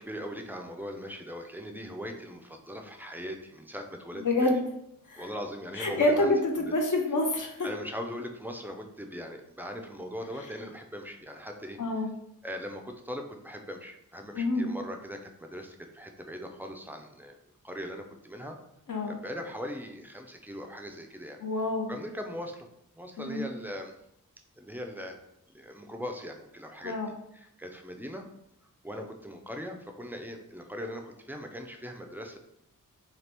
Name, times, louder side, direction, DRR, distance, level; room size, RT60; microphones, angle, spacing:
voice 1, 0.0-4.5 5.2-6.7 7.6-11.8 12.4-17.4 17.6-18.6 19.1-21.4 21.9-22.7 23.0-23.9 24.6-25.2 25.5-28.2 28.8-32.4, equal, 5° right, 3 dB, 0.3 m, -40 dB
voice 2, 4.2-4.6 5.1-5.3 5.8-7.7 11.8-12.1 14.3-14.7 18.9-19.2 21.4-21.9 23.2-23.5 26.8-27.1, left 2 dB, 60° left, 2 dB, 0.5 m, -27 dB
2.9 x 2.4 x 3.3 m, 0.79 s
wide cardioid pair, 65°, 35 cm